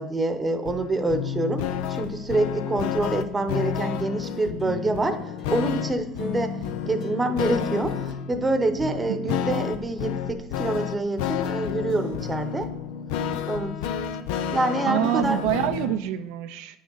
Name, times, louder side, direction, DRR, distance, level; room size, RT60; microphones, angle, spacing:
voice 1, 0.0-1.6 1.9-5.2 5.5-6.5 6.8-12.7 13.4-13.9 14.5-15.4, right 2 dB, 15° right, 7 dB, 0.9 m, -26 dB
sound 1, 0.6-16.0, left 9 dB, 85° left, 0.5 m, -30 dB
sound 2, 3.8-9.4, left 4 dB, 50° left, 2.1 m, -41 dB
voice 2, 14.9-16.8, right 11 dB, 80° right, 9 dB, 0.4 m, -26 dB
9.5 x 6.3 x 3.9 m, 0.89 s
supercardioid pair, 120°, 0 cm